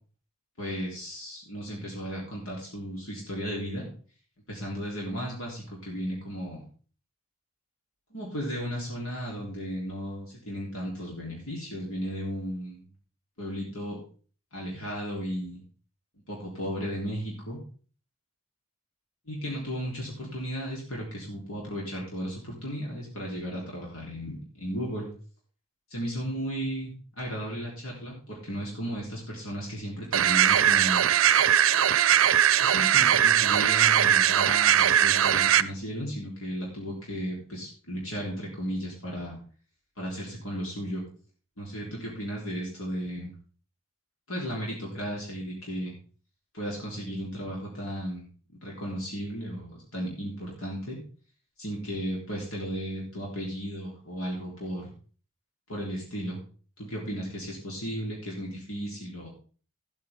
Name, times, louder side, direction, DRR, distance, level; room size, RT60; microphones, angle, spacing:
voice 1, 0.6-3.9 4.5-6.6 8.1-12.9 13.4-14.0 14.5-15.6 16.3-17.6 19.3-25.1 25.9-31.1 32.6-39.4 40.0-41.1 41.6-43.4 44.3-45.9 46.5-48.2 48.6-51.0 51.6-54.9 55.7-56.4 56.8-59.3, equal, 85° left, -3 dB, 3.7 m, -35 dB
sound 1, 30.1-35.6, right 10 dB, 80° right, 0.5 m, -20 dB
14.0 x 8.6 x 3.7 m, 0.41 s
head